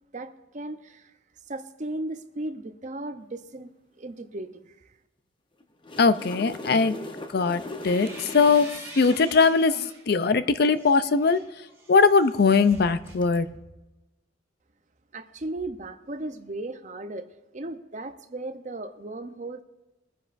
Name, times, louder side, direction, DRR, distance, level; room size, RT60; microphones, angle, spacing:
voice 1, 0.1-1.1 1.5-3.7 4.0-4.9 15.1-17.3 17.5-19.6, right 2 dB, 35° right, 9 dB, 0.6 m, -36 dB
sound 1, 5.6-9.2 13.0-13.2, left 2 dB, 25° left, 0.7 m, -39 dB
voice 2, 6.0-7.0 7.3-11.4 11.9-13.5, left 4 dB, 50° left, 13 dB, 0.4 m, -21 dB
sound 2, 7.4-10.1 10.5-13.9, right 2 dB, 15° right, 2.3 m, -46 dB
23.0 x 9.6 x 2.5 m, 1.0 s
head